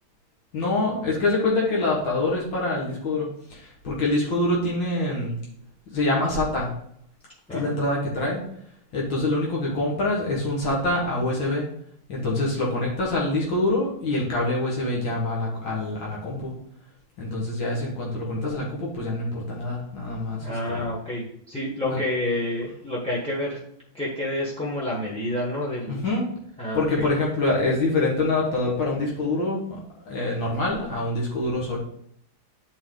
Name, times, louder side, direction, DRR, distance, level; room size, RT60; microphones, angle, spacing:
voice 1, 0.5-5.4 5.9-6.7 7.5-8.4 8.9-11.7 12.1-16.5 17.2-20.8 21.8-22.0 25.9-26.2 26.7-29.6 30.0-31.8, left 2 dB, 75° left, -4 dB, 2.2 m, -25 dB
voice 2, 7.5-7.8 20.4-23.6 23.9-26.0 26.6-27.1, left 1 dB, 5° left, -4 dB, 1.0 m, -29 dB
9.3 x 4.5 x 3.9 m, 0.70 s
omnidirectional pair, 2.1 m